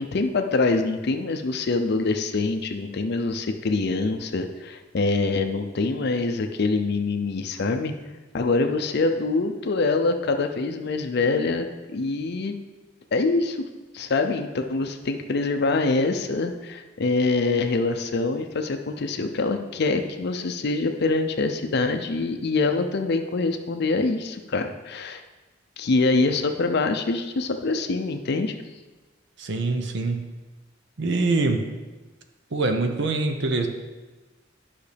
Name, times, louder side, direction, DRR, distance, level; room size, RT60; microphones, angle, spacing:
voice 1, 0.0-7.9 8.3-12.5 13.1-13.6 13.9-25.2 25.8-28.6, left 3 dB, 60° left, 6 dB, 0.5 m, -25 dB
voice 2, 29.4-30.2 31.0-31.6 32.5-33.7, right 3 dB, 65° right, 6 dB, 0.7 m, -24 dB
10.5 x 5.7 x 3.4 m, 1.2 s
head